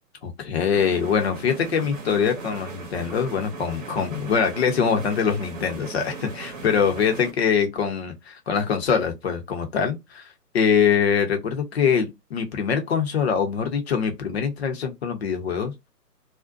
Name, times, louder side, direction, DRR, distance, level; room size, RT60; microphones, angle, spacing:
voice 1, 0.2-10.3 10.5-15.9, left 7 dB, 40° left, 0.7 m, -23 dB
sound 1, 0.7-7.3, right 4 dB, 50° right, 0.9 m, -38 dB
2.5 x 2.1 x 2.3 m
hypercardioid pair, 145°, 49 cm